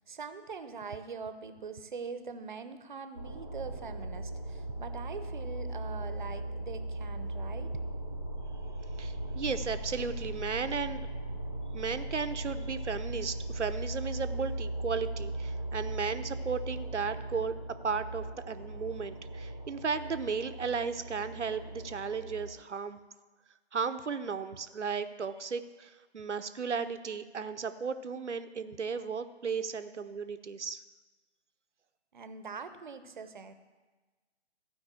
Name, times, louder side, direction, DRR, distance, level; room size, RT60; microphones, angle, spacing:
voice 1, 0.0-7.7 32.1-33.5, right 5 dB, 45° right, 10 dB, 0.8 m, -43 dB
sound 1, 3.1-22.5, right 1 dB, 15° left, 0.4 m, -38 dB
voice 2, 9.0-11.1 11.7-17.6 17.8-23.0 23.7-30.8, right 5 dB, 80° right, 10 dB, 0.8 m, -35 dB
15.0 x 5.3 x 7.5 m, 1.3 s
figure-of-eight pair, 145°, 35 cm